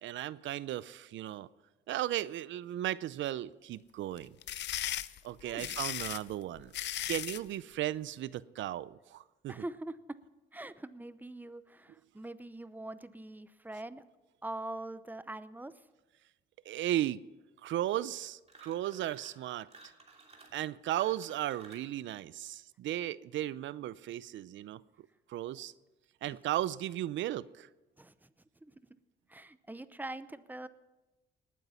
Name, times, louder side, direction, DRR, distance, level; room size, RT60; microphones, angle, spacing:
voice 1, 0.0-1.5 1.9-4.4 5.2-6.7 7.1-9.5 16.7-17.2 17.6-19.7 20.5-24.8 25.3-25.7 26.2-27.7, right 13 dB, 70° right, 0.5 m, -35 dB
sound 1, 4.2-7.5, left 12 dB, 60° left, 0.5 m, -37 dB
voice 2, 5.4-5.7 9.5-10.2 10.5-14.0 14.4-15.7 28.0-28.3 28.6-28.7 29.3-30.7, right 2 dB, 10° right, 0.7 m, -43 dB
sound 2, 18.4-19.4 19.7-21.9, right 3 dB, 30° right, 2.7 m, -56 dB
19.5 x 9.1 x 5.7 m
cardioid pair, 90°, 20 cm